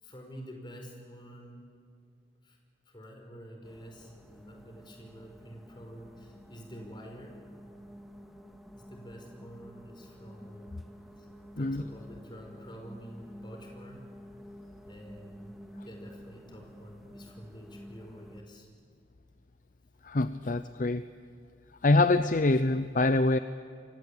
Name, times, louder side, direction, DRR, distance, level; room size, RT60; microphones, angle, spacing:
voice 1, 0.0-1.6 2.4-2.6 2.9-7.4 8.7-10.8 11.2-11.3 11.6-14.1 14.8-18.7, equal, 25° left, 2 dB, 5.3 m, -48 dB
sound 1, 3.6-18.4, equal, ahead, 2.2 m, -50 dB
voice 2, 20.0-21.0 21.8-23.4, left 2 dB, 50° left, 12 dB, 0.7 m, -25 dB
29.0 x 24.0 x 8.6 m, 2.3 s
head